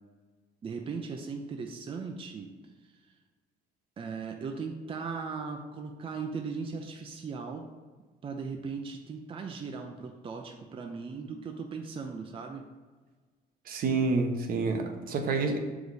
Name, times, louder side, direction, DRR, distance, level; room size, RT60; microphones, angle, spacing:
voice 1, 0.6-2.5 2.8-3.1 4.0-7.6 8.2-12.6, right 5 dB, 35° right, 3 dB, 0.6 m, -38 dB
voice 2, 13.7-15.6, right 4 dB, 60° right, 4 dB, 1.0 m, -28 dB
6.6 x 4.9 x 4.1 m, 1.4 s
cardioid pair, 110°, 17 cm